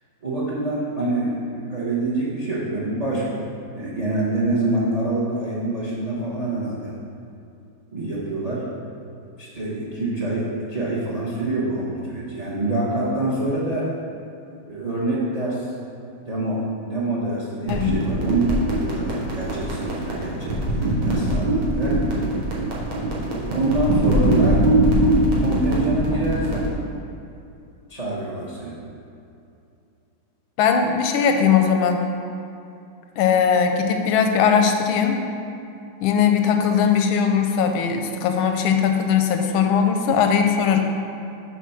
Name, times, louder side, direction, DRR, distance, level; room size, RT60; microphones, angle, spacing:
voice 1, 0.2-3.4 3.7-6.9 7.9-8.6 9.4-13.9 14.7-15.7 16.2-18.4 18.8-22.0 23.5-24.7 25.4-26.7 27.9-28.8, right 2 dB, 30° right, -6 dB, 0.7 m, -26 dB
voice 2, 17.7-18.0 30.6-32.0 33.2-35.2 36.0-40.8, left 7 dB, 85° left, 5 dB, 1.4 m, -19 dB
sound 1, 17.7-26.7, right 1 dB, 90° right, 2.1 m, -22 dB
7.1 x 4.2 x 5.7 m, 2.6 s
omnidirectional pair, 2.2 m